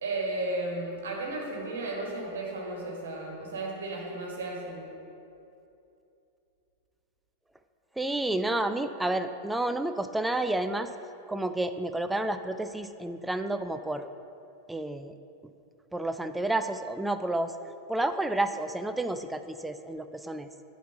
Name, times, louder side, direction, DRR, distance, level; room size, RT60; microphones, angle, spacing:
voice 1, 0.0-4.9, right 2 dB, 60° right, -1 dB, 1.7 m, -34 dB
voice 2, 8.0-10.9 11.3-14.1 14.7-15.1 15.9-17.5 17.9-20.5, right 2 dB, 5° right, 9 dB, 0.4 m, -30 dB
9.1 x 4.3 x 5.6 m, 2.7 s
figure-of-eight pair, 90°, 0 cm